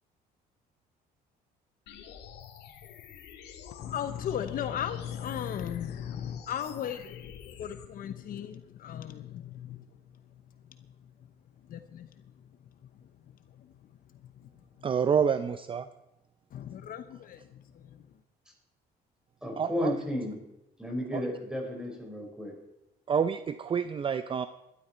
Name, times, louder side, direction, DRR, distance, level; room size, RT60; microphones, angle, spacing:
sound 1, 1.9-7.9, left 9 dB, 85° left, 2.1 m, -48 dB
voice 1, 3.8-10.2 10.7-11.1 11.7-12.5 12.9-13.7 14.2-14.5 14.8-14.9 16.5-18.1, left 9 dB, 55° left, 10 dB, 0.9 m, -37 dB
voice 2, 14.8-15.9 19.6-19.9 21.1-21.2 23.1-24.5, right 7 dB, 30° right, 11 dB, 0.6 m, -28 dB
voice 3, 19.4-20.4 20.8-22.5, left 1 dB, 5° right, 1 dB, 5.1 m, -33 dB
18.0 x 12.5 x 4.4 m, 0.90 s
cardioid pair, 110°, 17 cm